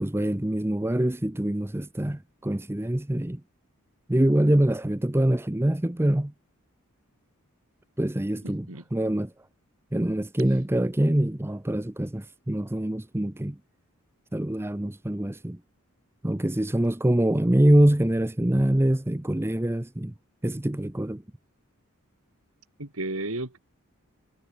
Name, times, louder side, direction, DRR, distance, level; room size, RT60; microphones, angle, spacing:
voice 1, 0.0-3.4 4.1-6.3 8.0-9.3 9.9-13.6 14.3-15.6 16.2-20.1 20.4-21.2, right 1 dB, 10° right, 0.7 m, -24 dB
voice 2, 8.4-8.8 22.8-23.6, right 2 dB, 75° right, 3.8 m, -33 dB
head